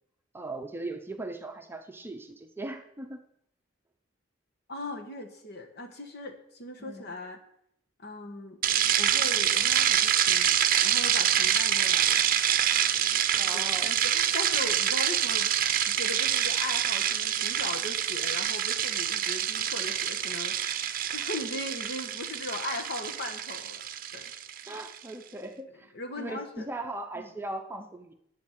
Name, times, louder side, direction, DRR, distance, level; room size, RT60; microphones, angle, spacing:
voice 1, 0.3-3.2 6.8-7.1 13.3-13.9 24.7-28.1, right 2 dB, 10° right, 5 dB, 0.8 m, -39 dB
voice 2, 4.7-7.4 8.0-8.6 9.0-12.3 12.5-12.9 13.5-15.5 15.8-23.8 24.1-24.3 25.9-26.7 27.1-27.3, left 2 dB, 55° left, 4 dB, 1.5 m, -39 dB
sound 1, 8.6-24.9, right 10 dB, 45° right, 0.7 m, -26 dB
8.8 x 7.3 x 7.5 m, 0.72 s
head